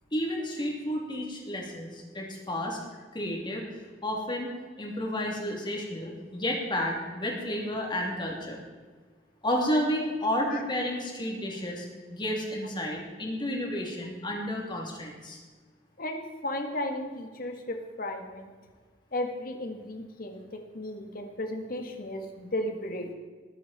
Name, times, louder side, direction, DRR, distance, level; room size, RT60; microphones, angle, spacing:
voice 1, 0.1-2.8 3.1-3.7 4.0-4.5 4.8-8.6 9.4-15.4, equal, 25° left, 0 dB, 2.9 m, -31 dB
voice 2, 16.0-18.5 19.1-20.4 20.7-23.1, left 1 dB, 50° left, 4 dB, 1.9 m, -34 dB
19.5 x 9.2 x 4.4 m, 1.5 s
head